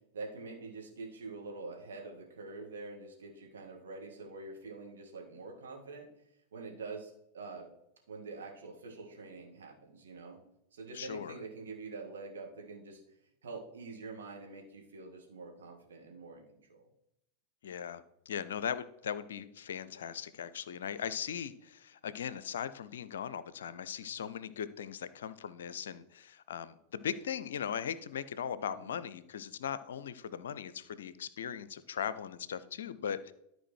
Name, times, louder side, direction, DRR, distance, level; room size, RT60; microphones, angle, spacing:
voice 1, 0.1-6.1 6.5-7.7 8.1-10.4 10.7-13.0 13.4-16.9 24.0-24.2 28.6-29.0, right 3 dB, 65° right, 0 dB, 2.2 m, -46 dB
voice 2, 10.9-11.4 17.6-33.3, left 8 dB, 60° left, 16 dB, 0.5 m, -39 dB
12.5 x 4.5 x 4.6 m, 0.80 s
figure-of-eight pair, 90°, 0 cm